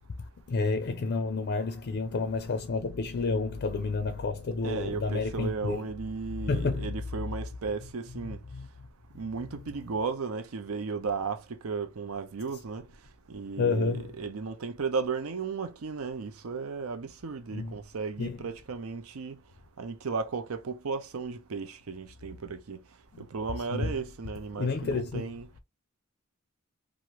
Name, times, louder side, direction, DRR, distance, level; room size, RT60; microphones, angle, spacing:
voice 1, 0.5-5.8 6.5-6.9 13.6-14.1 17.5-17.7 18.2-18.4 23.7-23.9 24.6-25.2, left 4 dB, 55° left, 0.4 m, -29 dB
voice 2, 4.6-8.4 9.1-12.9 13.3-19.4 19.8-22.8 23.2-25.5, right 5 dB, 85° right, 0.6 m, -35 dB
3.0 x 2.5 x 2.9 m
head